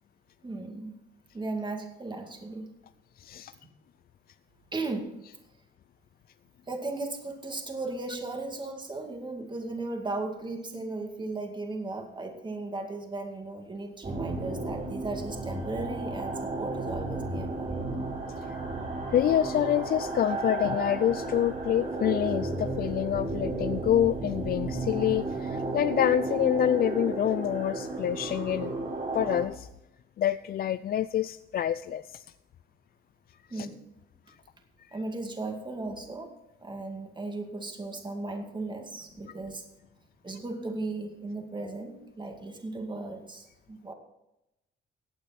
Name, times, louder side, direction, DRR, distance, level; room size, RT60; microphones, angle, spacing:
voice 1, 0.4-1.0 1.3-2.7 4.7-5.2 6.7-17.8 33.5-33.8 34.9-36.3 36.6-39.7 40.2-43.9, right 2 dB, 25° right, 3 dB, 2.2 m, -36 dB
voice 2, 3.2-3.5 19.1-28.7 29.1-29.7 30.2-32.2 33.5-33.7 34.9-35.0, left 11 dB, 50° left, 14 dB, 0.4 m, -27 dB
sound 1, 14.0-29.4, right 2 dB, 40° right, 5.2 m, -33 dB
16.0 x 8.9 x 4.3 m, 0.91 s
cardioid pair, 90°, 20 cm